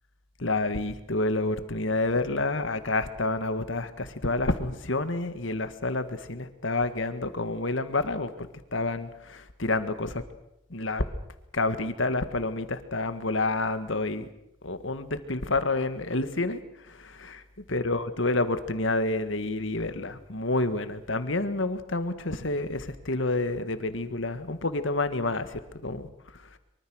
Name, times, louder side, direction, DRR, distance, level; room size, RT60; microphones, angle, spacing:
voice 1, 0.4-10.2 10.7-11.0 11.5-14.3 14.6-17.4 17.7-26.1 26.5-26.6, left 2 dB, 70° left, 10 dB, 1.9 m, -29 dB
24.0 x 24.0 x 6.5 m, 0.83 s
head